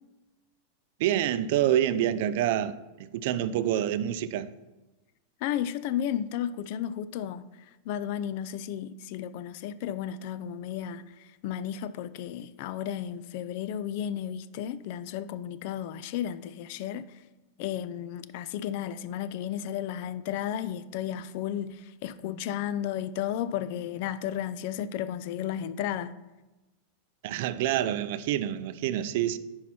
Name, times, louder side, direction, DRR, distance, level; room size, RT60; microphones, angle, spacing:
voice 1, 1.0-4.5 27.2-29.4, right 11 dB, 60° right, 0.5 m, -27 dB
voice 2, 5.4-17.1 17.6-26.1, left 10 dB, 55° left, 0.4 m, -33 dB
10.0 x 4.8 x 4.2 m
supercardioid pair, 135°, 0 cm